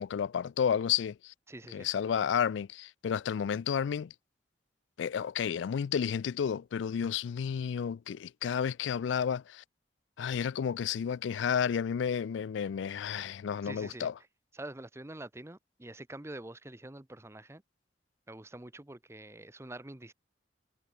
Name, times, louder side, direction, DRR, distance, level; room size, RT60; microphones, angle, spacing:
voice 1, 0.0-1.3 1.7-4.1 5.0-9.6 10.2-14.1, left 7 dB, 75° left, 0.3 m, -31 dB
voice 2, 1.5-1.9 13.6-14.1 14.5-17.6 18.3-20.1, right 1 dB, 15° right, 0.7 m, -46 dB
head